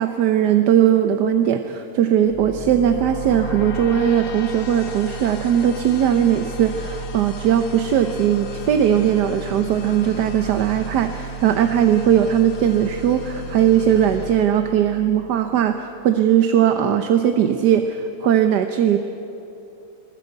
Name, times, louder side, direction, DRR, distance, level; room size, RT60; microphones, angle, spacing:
voice 1, 0.0-19.0, right 9 dB, 85° right, 7 dB, 1.5 m, -19 dB
sound 1, 2.3-15.4, right 1 dB, 55° left, 1.6 m, -33 dB
21.5 x 20.0 x 8.0 m, 2.9 s
omnidirectional pair, 1.7 m